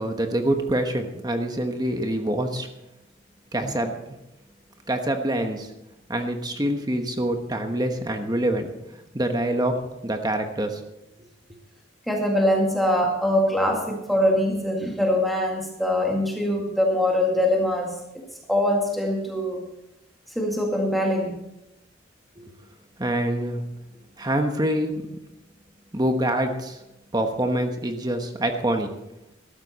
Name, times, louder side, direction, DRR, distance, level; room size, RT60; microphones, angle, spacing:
voice 1, 0.0-2.7 3.5-4.2 4.9-5.7 6.1-8.7 9.1-9.8 10.0-10.8 22.4-22.5 23.0-23.6 24.2-25.0 25.9-26.8 27.1-28.9, right 1 dB, 20° right, 5 dB, 1.2 m, -25 dB
voice 2, 12.1-18.2 18.5-19.6 20.4-21.4, left 1 dB, ahead, -1 dB, 1.9 m, -23 dB
14.0 x 12.5 x 4.2 m, 0.90 s
head